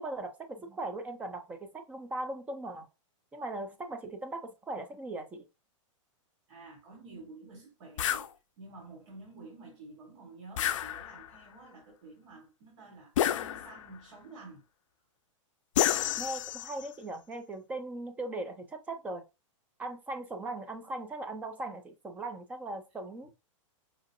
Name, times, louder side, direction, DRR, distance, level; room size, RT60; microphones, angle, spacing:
voice 1, 0.0-2.9 3.3-5.5 16.2-19.2 19.8-23.3, right 2 dB, 10° right, 0.4 m, -39 dB
voice 2, 6.5-14.6, right 3 dB, 65° right, 1.4 m, -50 dB
sound 1, 8.0-8.3 10.6-11.4 13.2-14.0 15.8-16.9, left 11 dB, 70° left, 0.4 m, -30 dB
5.1 x 2.5 x 2.6 m
hypercardioid pair, 155°, 17 cm